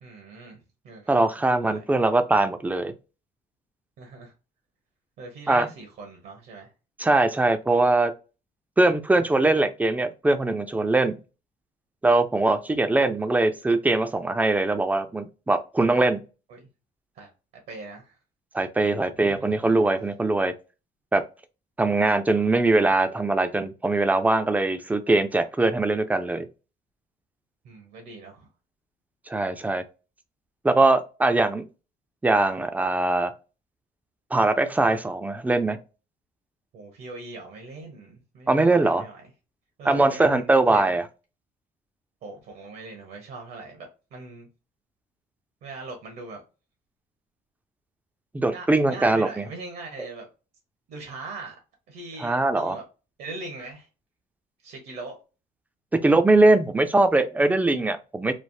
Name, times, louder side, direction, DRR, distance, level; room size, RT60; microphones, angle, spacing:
voice 1, 0.0-1.3 1.6-1.8 4.0-4.3 5.2-6.7 16.5-16.7 17.1-17.3 17.7-18.2 19.2-19.9 27.6-28.5 36.7-39.3 39.8-41.0 42.2-44.5 45.6-46.4 48.4-50.3 50.9-51.6 51.9-52.8 53.2-53.9 54.6-55.2, right 3 dB, 70° right, 1.0 m, -41 dB
voice 2, 1.1-2.9 5.5-5.7 7.0-8.1 8.8-11.2 12.0-16.2 18.5-20.5 21.1-21.2 21.8-26.5 29.3-29.8 30.6-31.6 32.2-33.3 34.3-35.8 38.5-39.0 39.9-41.0 48.3-49.4 52.2-52.8 56.0-58.3, right 2 dB, 10° right, 0.4 m, -21 dB
3.2 x 2.0 x 2.6 m
cardioid pair, 110°, 17 cm